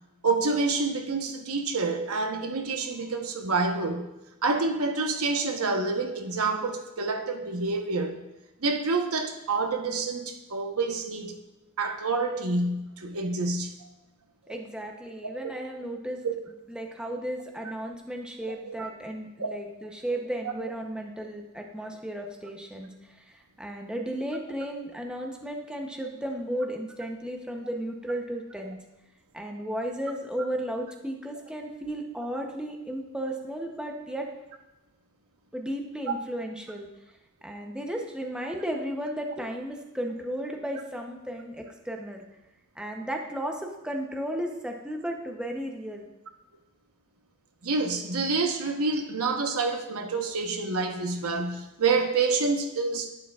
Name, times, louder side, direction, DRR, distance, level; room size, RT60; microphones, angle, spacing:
voice 1, 0.2-4.1 4.4-8.2 8.6-11.4 11.8-13.8 14.5-14.6 15.2-15.3 16.2-16.3 18.7-18.9 19.4-19.5 20.6-20.7 36.1-36.2 47.6-53.1, right 3 dB, 75° right, 4 dB, 1.0 m, -28 dB
voice 2, 14.5-16.2 16.7-22.9 23.1-28.8 29.3-34.3 35.5-36.9 37.4-42.2 42.8-46.1, right 1 dB, 5° right, 1 dB, 0.8 m, -34 dB
11.5 x 9.9 x 2.4 m, 0.96 s
head